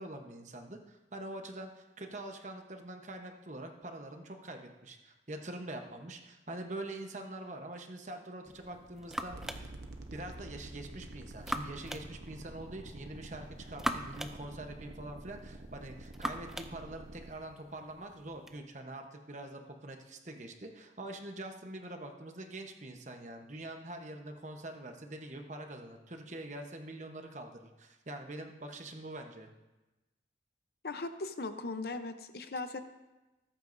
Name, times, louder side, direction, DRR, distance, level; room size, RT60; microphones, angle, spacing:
voice 1, 0.0-9.7 10.1-29.5, right 1 dB, 40° right, 4 dB, 1.0 m, -44 dB
sound 1, 8.5-18.6, equal, 5° right, 0.4 m, -43 dB
sound 2, 9.3-17.3, right 1 dB, 70° right, 1.0 m, -48 dB
voice 2, 30.8-32.8, left 3 dB, 60° left, 9 dB, 0.8 m, -38 dB
18.5 x 8.8 x 2.7 m, 1.1 s
head